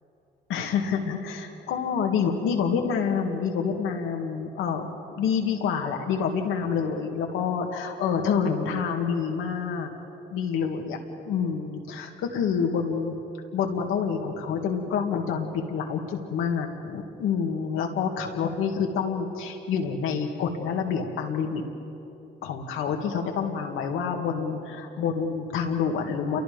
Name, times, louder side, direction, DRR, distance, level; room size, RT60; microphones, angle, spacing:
voice 1, 0.5-4.9 5.2-9.9 10.3-11.0 11.2-13.2 13.5-21.6 22.4-26.4, left 6 dB, 85° left, 3 dB, 2.3 m, -27 dB
28.5 x 23.0 x 5.3 m, 2.9 s
cardioid pair, 70°, 20 cm